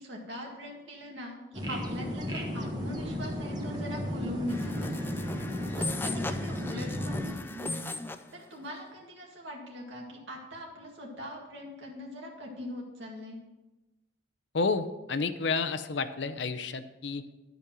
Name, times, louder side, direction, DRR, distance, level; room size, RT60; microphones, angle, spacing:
voice 1, 0.0-5.4 5.8-13.4, equal, 80° right, -1 dB, 2.0 m, -41 dB
sound 1, 1.5-7.3, left 1 dB, 20° right, 1.3 m, -34 dB
sound 2, 4.5-8.3, left 2 dB, 10° left, 0.4 m, -38 dB
voice 2, 14.5-17.2, left 4 dB, 70° left, 11 dB, 0.6 m, -30 dB
11.0 x 5.3 x 6.0 m, 1.1 s
head